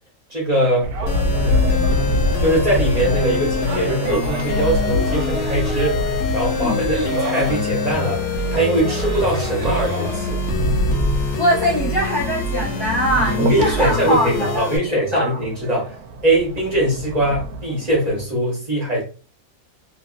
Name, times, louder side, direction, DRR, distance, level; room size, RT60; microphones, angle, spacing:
voice 1, 0.3-0.9 2.4-6.0 6.3-8.2 8.5-10.4 13.4-15.9 16.2-19.0, right 1 dB, 30° right, -3 dB, 1.1 m, -21 dB
sound 1, 0.8-18.2, equal, 75° right, 1.1 m, -26 dB
sound 2, 1.1-14.8, left 3 dB, 60° left, 0.9 m, -25 dB
voice 2, 11.4-14.7 15.1-15.4, equal, 30° left, -6 dB, 0.4 m, -21 dB
3.0 x 2.6 x 2.4 m, 0.35 s
omnidirectional pair, 1.7 m